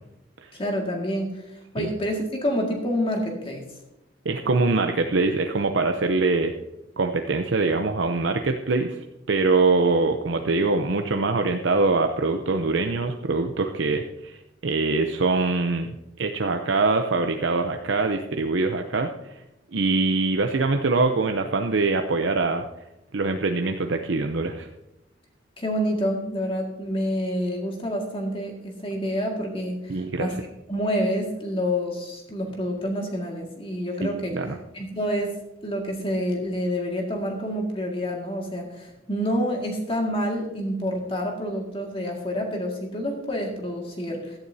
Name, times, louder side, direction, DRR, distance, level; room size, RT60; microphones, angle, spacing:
voice 1, 0.5-1.4 1.7-3.7 25.6-30.3 30.7-34.4 34.7-44.4, equal, 30° left, 0 dB, 2.0 m, -28 dB
voice 2, 4.2-6.5 7.0-19.4 19.7-22.6 23.1-24.7 29.9-30.4 34.0-34.6, right 3 dB, 85° right, 5 dB, 0.7 m, -24 dB
16.0 x 12.0 x 2.8 m, 0.90 s
head